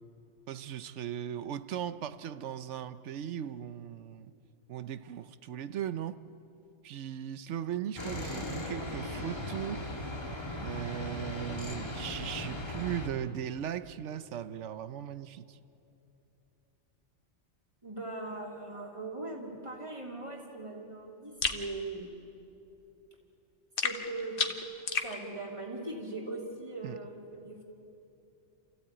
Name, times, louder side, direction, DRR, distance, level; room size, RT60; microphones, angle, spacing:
voice 1, 0.5-4.3 4.7-6.2 6.8-9.9 10.6-15.6 26.8-27.0, right 10 dB, 80° right, 1.0 m, -38 dB
sound 1, 8.0-13.1, left 1 dB, 20° left, 2.4 m, -38 dB
voice 2, 17.8-22.1 23.8-24.5 25.0-27.6, right 2 dB, 25° right, 3.0 m, -40 dB
sound 2, 21.4-21.6 23.8-25.1, left 5 dB, 50° left, 1.3 m, -32 dB
28.0 x 15.0 x 8.8 m
omnidirectional pair, 1.2 m